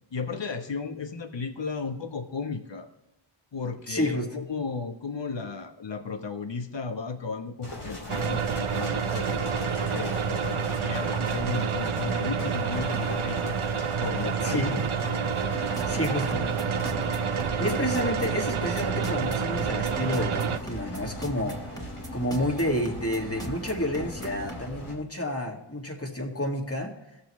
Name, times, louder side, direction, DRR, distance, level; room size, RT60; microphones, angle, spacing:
voice 1, 0.1-2.9 3.5-13.6 14.0-15.3 17.0-17.1, left 4 dB, 60° left, 7 dB, 1.1 m, -35 dB
voice 2, 3.9-4.3 14.4-14.8 15.9-16.5 17.6-21.6 22.1-26.9, left 1 dB, 30° left, 1 dB, 2.1 m, -29 dB
sound 1, 7.6-24.9, left 1 dB, 90° left, 2.7 m, -39 dB
sound 2, 8.1-20.6, right 6 dB, 80° right, 0.7 m, -28 dB
sound 3, 15.5-24.6, right 2 dB, 5° left, 1.4 m, -41 dB
17.5 x 6.6 x 3.2 m, 0.92 s
wide cardioid pair, 50°, 50 cm